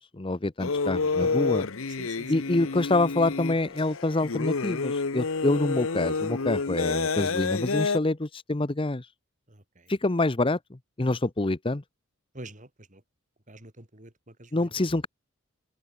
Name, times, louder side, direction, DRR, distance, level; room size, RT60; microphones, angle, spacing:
voice 1, 0.0-1.7 2.3-9.1 9.9-11.8 14.5-15.1, left 2 dB, 25° left, 0.7 m, -26 dB
sound 1, 0.6-8.0, left 4 dB, 70° left, 0.9 m, -29 dB
voice 2, 1.2-1.5 2.0-2.3 9.5-9.9 12.3-13.0 13.5-14.7, right 1 dB, 35° right, 3.7 m, -46 dB
head